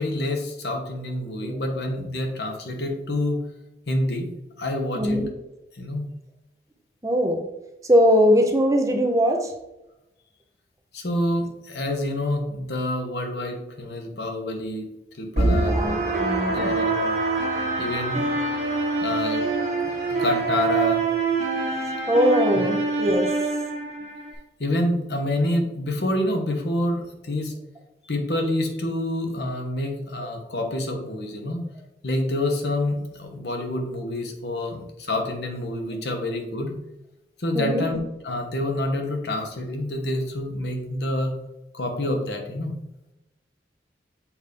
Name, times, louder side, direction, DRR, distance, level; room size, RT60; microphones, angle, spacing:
voice 1, 0.0-3.4 3.9-4.3 4.6-5.2 5.7-6.0 10.9-14.9 15.2-15.8 16.5-17.2 17.8-18.3 19.0-19.4 20.1-21.0 24.6-27.5 28.0-31.6 32.0-36.8 37.4-38.0 38.2-41.4 41.7-42.7, left 1 dB, 70° left, 3 dB, 1.0 m, -27 dB
voice 2, 4.9-5.3 7.0-7.4 7.8-9.5 15.7-16.7 22.1-23.3 37.5-37.9, equal, 20° right, 2 dB, 0.6 m, -21 dB
sound 1, 15.4-24.3, right 3 dB, 40° right, 1.5 m, -25 dB
7.2 x 2.7 x 5.1 m, 0.94 s
head